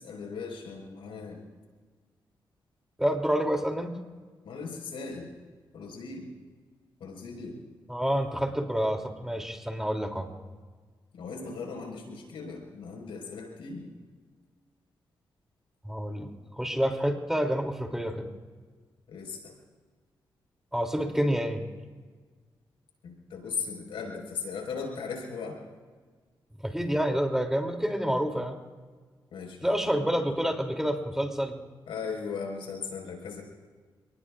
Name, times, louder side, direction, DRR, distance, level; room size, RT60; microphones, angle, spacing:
voice 1, 0.0-1.4 4.4-5.3 5.7-6.3 7.0-7.6 11.1-13.9 19.1-19.5 23.0-25.6 29.3-30.3 31.9-33.4, left 5 dB, 85° left, 0 dB, 4.9 m, -38 dB
voice 2, 3.0-3.9 7.9-10.3 15.8-18.3 20.7-21.6 26.6-28.6 29.6-31.6, equal, 5° right, 3 dB, 2.9 m, -28 dB
29.0 x 19.5 x 2.5 m, 1.5 s
supercardioid pair, 50°, 9 cm